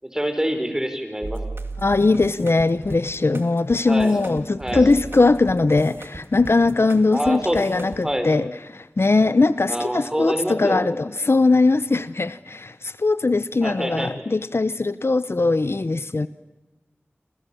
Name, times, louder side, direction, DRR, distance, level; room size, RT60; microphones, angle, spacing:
voice 1, 0.0-1.4 3.9-4.2 4.6-4.9 7.1-8.3 9.7-11.0 13.6-14.1, equal, 15° right, 4.9 m, -26 dB
sound 1, 1.2-8.0, right 2 dB, 60° right, 2.2 m, -36 dB
voice 2, 1.8-16.3, left 3 dB, 70° left, 0.8 m, -20 dB
28.0 x 27.5 x 7.1 m
wide cardioid pair, 50°, 4 cm